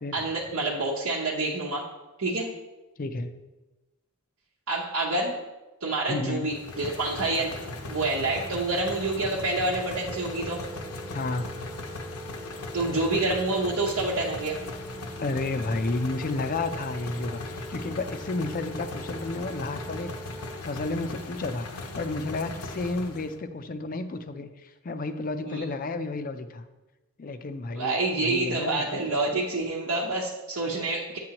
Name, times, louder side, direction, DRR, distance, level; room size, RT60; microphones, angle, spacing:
voice 1, 0.1-1.9 2.2-2.5 4.7-5.3 5.8-7.5 7.9-10.6 12.7-14.6 25.4-25.6 27.7-31.2, right 2 dB, 70° right, -5 dB, 0.9 m, -27 dB
voice 2, 3.0-3.3 6.1-6.5 11.1-11.5 15.2-26.6 27.2-29.3, left 2 dB, 40° left, 9 dB, 0.5 m, -32 dB
sound 1, 6.5-23.4, left 2 dB, 75° left, 0.8 m, -38 dB
sound 2, 10.1-20.6, right 2 dB, 25° right, 0.4 m, -44 dB
8.5 x 7.6 x 2.9 m, 1.1 s
head